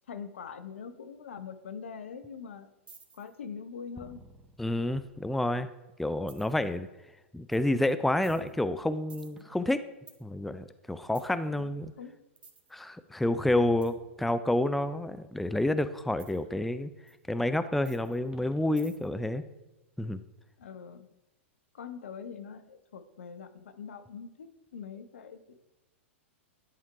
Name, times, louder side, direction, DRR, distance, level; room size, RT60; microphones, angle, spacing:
voice 1, 0.1-2.7 3.1-4.2 11.3-12.2 20.6-21.1 21.7-25.5, left 6 dB, 75° left, 10 dB, 0.7 m, -43 dB
sound 1, 2.9-3.4 3.9-5.5 6.3-6.7 7.5-7.7 8.2-10.2 11.1-11.4 12.4-12.7 13.5-14.6 16.2-16.4 17.1-17.2 17.8-19.2, right 3 dB, 15° right, 1.0 m, -52 dB
voice 2, 4.6-5.7 6.0-6.9 7.3-9.9 10.2-11.9 12.7-16.9 17.3-19.4 20.0-20.2, left 1 dB, ahead, 11 dB, 0.3 m, -29 dB
10.5 x 3.6 x 4.6 m, 1.0 s
hypercardioid pair, 100°, 7 cm